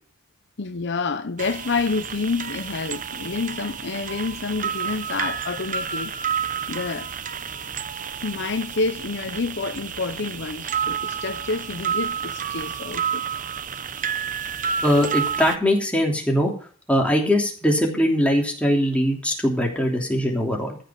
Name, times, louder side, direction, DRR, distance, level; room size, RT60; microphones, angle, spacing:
voice 1, 0.6-6.3 6.7-7.1 8.2-13.2, left 4 dB, 60° left, 0.7 m, -28 dB
sound 1, 1.4-15.6, right 7 dB, 40° right, 0.8 m, -30 dB
voice 2, 14.8-16.5 16.9-20.8, equal, 5° left, 3.1 m, -21 dB
14.5 x 5.5 x 7.5 m
head